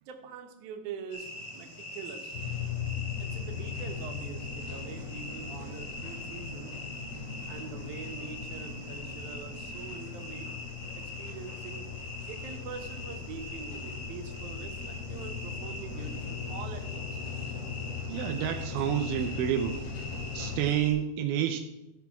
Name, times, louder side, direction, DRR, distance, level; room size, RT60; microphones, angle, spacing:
voice 1, 0.0-2.4 3.2-6.7 7.5-10.6 10.9-11.9 12.3-17.3, right 6 dB, 65° right, 4 dB, 2.2 m, -44 dB
sound 1, 1.1-20.9, left 1 dB, 40° left, 3.1 m, -43 dB
sound 2, 2.3-20.7, left 5 dB, 75° left, 4.0 m, -39 dB
voice 2, 18.1-19.8 20.3-21.6, right 10 dB, 85° right, 6 dB, 2.4 m, -29 dB
13.5 x 4.6 x 5.9 m, 0.93 s
omnidirectional pair, 4.4 m